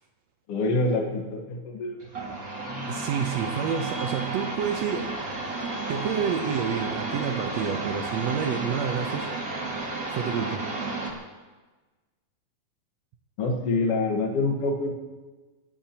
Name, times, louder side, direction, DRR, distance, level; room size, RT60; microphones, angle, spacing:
voice 1, 0.5-2.4 13.4-14.9, left 2 dB, 55° left, 2 dB, 1.8 m, -26 dB
sound 1, 2.0-11.1, right 2 dB, 30° right, 2.0 m, -32 dB
voice 2, 2.9-5.1 5.9-9.4 10.1-10.7, right 7 dB, 85° right, 4 dB, 1.5 m, -29 dB
25.5 x 15.0 x 2.9 m, 1.3 s
omnidirectional pair, 4.3 m